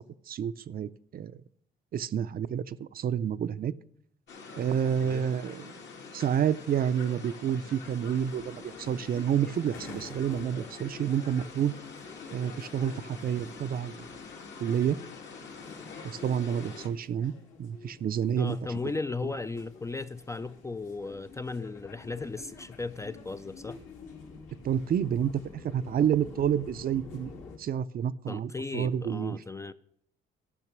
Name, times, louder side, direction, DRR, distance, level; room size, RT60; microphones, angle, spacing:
voice 1, 0.0-1.4 1.9-3.7 4.6-5.7 6.1-11.7 12.3-14.0 14.6-15.0 16.0-17.3 17.6-18.6 24.6-29.4, right 9 dB, 50° right, 0.4 m, -29 dB
sound 1, 4.3-16.9, left 4 dB, 65° left, 1.9 m, -46 dB
voice 2, 5.0-5.3 18.4-23.8 28.3-29.7, left 3 dB, 15° left, 0.3 m, -36 dB
sound 2, 7.9-27.6, left 5 dB, 85° left, 2.6 m, -49 dB
12.5 x 5.8 x 6.0 m
cardioid pair, 90°, 20 cm